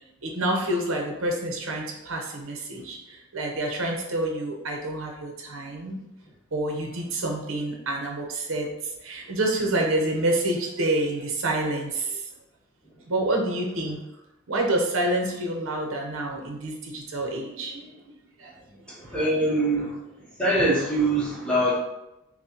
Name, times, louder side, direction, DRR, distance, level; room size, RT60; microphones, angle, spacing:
voice 1, 0.2-6.0 6.5-8.7 9.0-12.2 13.1-14.0 14.5-17.9 18.4-18.5 19.1-19.2, right 1 dB, 65° right, 1 dB, 0.8 m, -28 dB
voice 2, 18.9-20.0 20.4-21.8, right 1 dB, 5° left, -6 dB, 0.9 m, -23 dB
5.9 x 2.1 x 2.9 m, 0.90 s
head